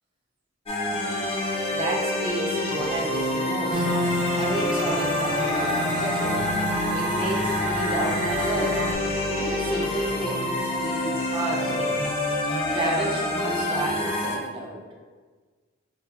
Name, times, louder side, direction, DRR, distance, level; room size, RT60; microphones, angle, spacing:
sound 1, 0.7-14.4, left 1 dB, 30° left, 0.4 m, -27 dB
voice 1, 1.7-6.4 6.9-12.0 12.7-14.8, right 1 dB, 25° right, -2 dB, 0.6 m, -31 dB
sound 2, 3.7-8.9, equal, 75° right, 0.5 m, -29 dB
4.8 x 2.1 x 2.3 m, 1.4 s
head